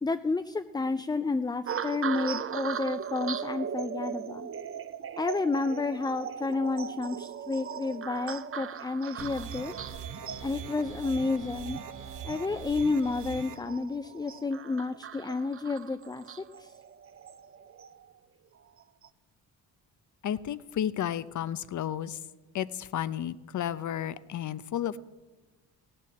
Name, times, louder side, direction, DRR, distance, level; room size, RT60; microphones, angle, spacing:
voice 1, 0.0-4.5 5.2-9.7 10.4-11.8 12.2-16.7, left 3 dB, 10° left, 9 dB, 0.4 m, -31 dB
sound 1, 1.7-18.1 18.8-19.1, right 8 dB, 35° right, 0.6 m, -39 dB
sound 2, 9.2-13.6, right 7 dB, 50° right, 1.1 m, -42 dB
voice 2, 20.2-22.2 22.5-25.0, left 10 dB, 45° left, 16 dB, 0.7 m, -32 dB
16.5 x 7.7 x 7.1 m, 1.2 s
supercardioid pair, 70°, 41 cm